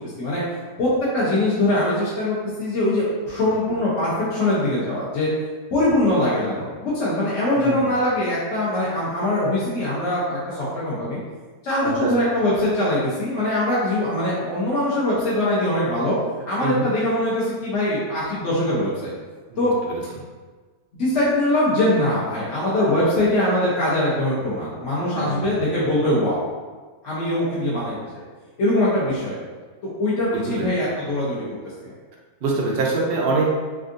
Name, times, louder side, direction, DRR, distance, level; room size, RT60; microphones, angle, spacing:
voice 1, 0.8-5.3 5.7-11.2 11.6-16.2 16.5-19.1 19.6-19.7 20.9-26.4 27.0-27.9 28.6-29.3 29.8-31.4 31.8-31.9, left 1 dB, 60° left, -9 dB, 0.9 m, -22 dB
voice 2, 16.6-16.9 19.5-19.6 19.9-20.0 25.1-25.6 30.6-30.7 32.4-33.5, right 3 dB, 85° right, -2 dB, 0.5 m, -24 dB
3.4 x 2.4 x 2.5 m, 1.4 s
omnidirectional pair, 1.7 m